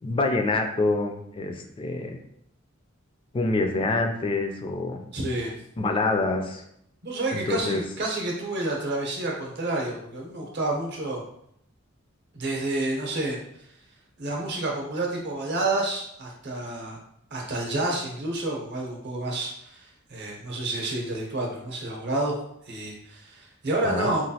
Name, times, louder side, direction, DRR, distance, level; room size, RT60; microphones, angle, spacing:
voice 1, 0.0-2.2 3.3-5.0 5.8-6.6 7.3-7.8 23.8-24.1, left 3 dB, 25° left, 4 dB, 0.3 m, -26 dB
voice 2, 5.1-5.5 7.0-11.2 12.3-13.4 14.2-17.0 17.3-22.4 22.7-24.3, right 2 dB, 55° right, -1 dB, 0.7 m, -29 dB
3.0 x 2.3 x 2.8 m, 0.74 s
head